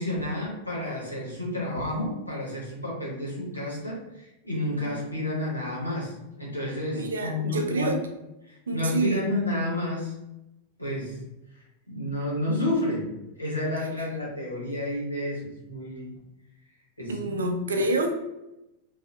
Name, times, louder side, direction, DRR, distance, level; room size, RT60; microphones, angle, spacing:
voice 1, 0.0-8.0 8.5-10.1 10.8-11.2 11.9-13.1 13.4-16.1 17.0-17.5, left 1 dB, 85° left, -5 dB, 0.9 m, -30 dB
voice 2, 6.9-8.0 8.7-9.2 17.1-18.1, right 2 dB, 70° right, 4 dB, 0.4 m, -28 dB
2.5 x 2.4 x 2.2 m, 0.92 s
figure-of-eight pair, 90°, 0 cm